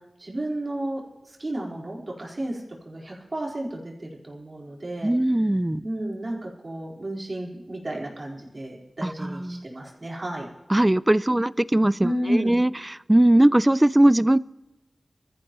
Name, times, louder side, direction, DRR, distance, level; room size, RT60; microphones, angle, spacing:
voice 1, 0.2-1.0 1.3-5.1 5.8-10.5 12.0-12.6, right 1 dB, 45° right, -2 dB, 4.4 m, -32 dB
voice 2, 5.0-5.8 9.0-9.7 10.7-14.4, right 1 dB, 20° right, 19 dB, 0.4 m, -20 dB
23.0 x 14.0 x 3.1 m, 1.0 s
wide cardioid pair, 65°, 0 cm